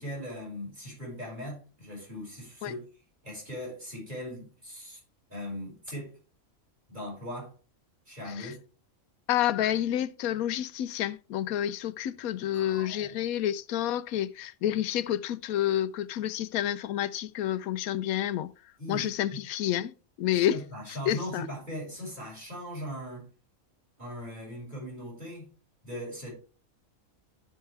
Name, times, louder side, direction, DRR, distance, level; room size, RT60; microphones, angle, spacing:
voice 1, 0.0-2.9 3.2-5.0 5.3-6.1 6.9-7.5 8.1-8.6 12.5-13.2 18.8-19.1 20.5-23.3 24.0-25.5 25.8-26.3, equal, 35° right, 5.5 m, -39 dB
voice 2, 9.3-18.5 18.9-20.6 20.9-21.5, left 11 dB, 90° left, 1.0 m, -29 dB
13.0 x 5.6 x 3.3 m
omnidirectional pair, 1.4 m